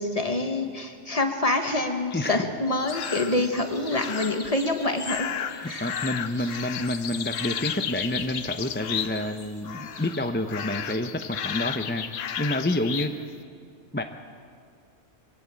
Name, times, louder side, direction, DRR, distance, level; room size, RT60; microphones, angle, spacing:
voice 1, 0.0-5.3 5.6-5.9, left 2 dB, 30° left, 5 dB, 1.5 m, -26 dB
voice 2, 2.1-2.4 5.5-13.3 13.9-14.0, left 1 dB, 10° left, 6 dB, 0.6 m, -29 dB
sound 1, 2.7-10.3, left 3 dB, 50° left, 1.6 m, -42 dB
sound 2, 2.9-3.4 3.9-4.5 5.0-9.4 9.6-10.2 10.5-13.1, left 9 dB, 85° left, 1.2 m, -33 dB
23.5 x 16.5 x 7.6 m, 2.2 s
omnidirectional pair, 1.3 m